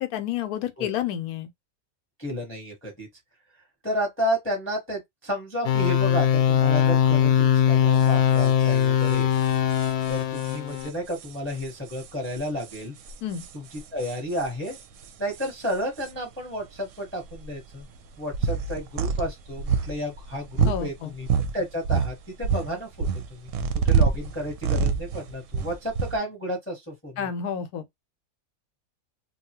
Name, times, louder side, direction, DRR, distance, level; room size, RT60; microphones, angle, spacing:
voice 1, 0.0-1.5 13.2-13.4 20.6-21.1 27.2-27.8, left 9 dB, 90° left, 1.1 m, -30 dB
voice 2, 2.2-3.1 3.8-9.3 10.1-12.9 13.5-13.6 13.9-14.8 15.2-17.8 18.2-21.3 21.5-23.5 23.8-27.3, equal, 10° left, 0.8 m, -32 dB
sound 1, 5.6-10.9, left 9 dB, 65° left, 0.8 m, -21 dB
sound 2, 8.0-8.1 8.4-8.5 8.8-8.9 9.0-16.1 16.9-17.0 17.2-21.6 21.8-26.2, right 6 dB, 70° right, 0.8 m, -27 dB
2.9 x 2.3 x 2.8 m
omnidirectional pair, 1.5 m